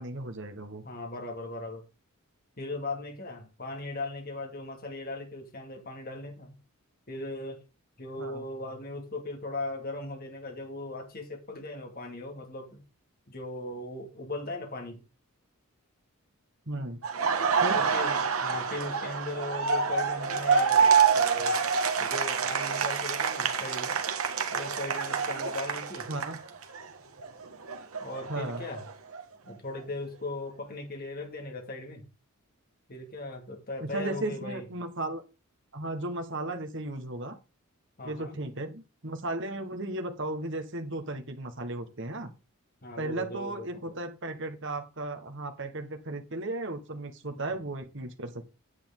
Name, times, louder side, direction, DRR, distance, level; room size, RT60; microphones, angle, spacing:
voice 1, 0.0-0.8 8.2-8.4 16.7-17.0 17.6-17.8 26.1-26.4 28.3-28.6 33.8-35.2 35.7-37.4 38.0-42.3 43.0-48.4, right 2 dB, 55° right, 1.6 m, -35 dB
voice 2, 0.8-1.8 2.6-6.6 7.1-7.6 8.0-12.8 13.3-15.0 17.7-21.6 22.0-24.0 24.5-26.1 28.0-28.9 29.4-32.1 32.9-34.7 38.0-38.4 42.8-44.0 47.3-47.4, left 2 dB, 45° left, 2.3 m, -38 dB
Laughter, 17.0-26.9 27.2-29.2, right 6 dB, 75° right, 1.5 m, -27 dB
9.8 x 8.7 x 3.8 m
head